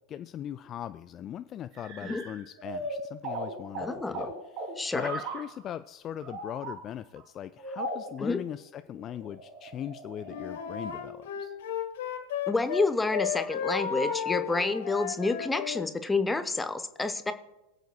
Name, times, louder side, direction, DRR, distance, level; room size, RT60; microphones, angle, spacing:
voice 1, 0.1-11.5, left 10 dB, 30° left, 13 dB, 0.3 m, -39 dB
sound 1, 1.7-5.6 6.2-6.8 7.2-7.3 7.6-8.2 8.9-11.1, right 1 dB, 45° right, 3.0 m, -38 dB
voice 2, 3.8-4.3 4.8-5.1 8.2-8.4 12.5-17.3, left 3 dB, 10° left, 10 dB, 0.8 m, -29 dB
Wind instrument woodwind instrument, 10.2-12.8 13.1-15.9, left 8 dB, 55° left, 1.3 m, -33 dB
22.5 x 7.9 x 2.3 m, 1.0 s
figure-of-eight pair, 90°, 0 cm